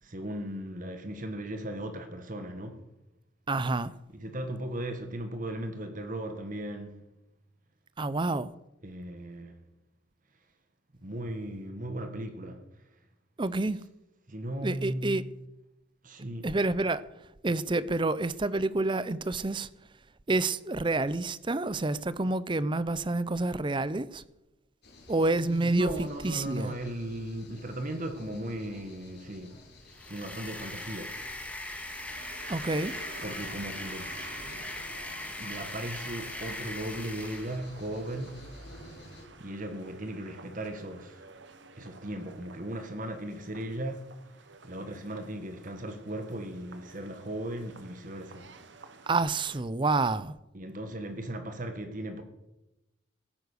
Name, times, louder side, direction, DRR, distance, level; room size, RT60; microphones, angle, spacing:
voice 1, 0.0-2.9 4.1-7.0 8.8-9.6 11.0-13.0 14.3-15.2 16.0-16.5 25.4-29.6 30.1-31.2 33.2-34.3 35.4-38.5 39.4-41.3 41.8-44.1 44.4-48.5 50.5-52.2, right 1 dB, 40° right, 1.4 m, -37 dB
voice 2, 3.5-3.9 8.0-8.5 13.4-13.8 14.6-15.2 16.4-17.0 17.4-19.7 20.3-24.2 25.1-26.7 32.5-32.9 49.1-50.3, right 2 dB, 25° right, 0.5 m, -28 dB
sound 1, 24.8-39.2, left 1 dB, 55° left, 3.7 m, -52 dB
sound 2, 29.9-37.6, left 1 dB, 5° left, 1.9 m, -40 dB
sound 3, 31.7-49.6, right 4 dB, 60° right, 1.2 m, -51 dB
16.5 x 9.6 x 6.5 m
head